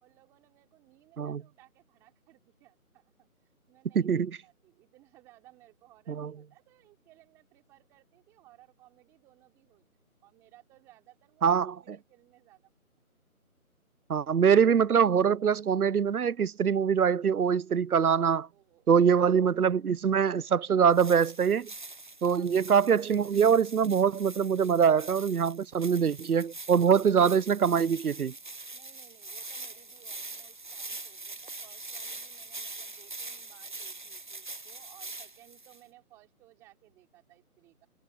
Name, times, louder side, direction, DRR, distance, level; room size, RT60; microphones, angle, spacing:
voice 1, 0.0-3.3 3.7-9.9 10.2-12.7 18.1-19.2 22.2-22.7 28.7-37.9, right 17 dB, 5° right, 3.0 m, -60 dB
voice 2, 3.9-4.3 6.1-6.3 11.4-11.7 14.1-18.4 18.9-21.7 22.2-28.3, right 7 dB, 80° right, 0.7 m, -24 dB
sound 1, 20.9-35.8, right 3 dB, 35° right, 0.8 m, -43 dB
figure-of-eight pair, 165°, 44 cm